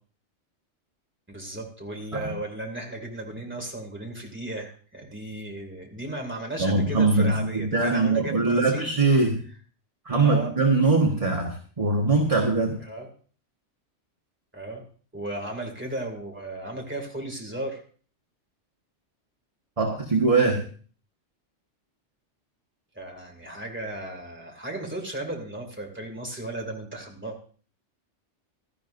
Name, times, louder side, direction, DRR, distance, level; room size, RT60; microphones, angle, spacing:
voice 1, 1.3-9.0 10.1-10.5 12.8-13.1 14.5-14.8 15.1-17.8 22.9-27.5, right 1 dB, 10° right, 1 dB, 2.4 m, -35 dB
voice 2, 6.6-9.4 10.0-12.7 19.8-20.6, right 3 dB, 30° right, 0 dB, 1.5 m, -22 dB
16.5 x 12.5 x 2.6 m, 0.41 s
omnidirectional pair, 1.2 m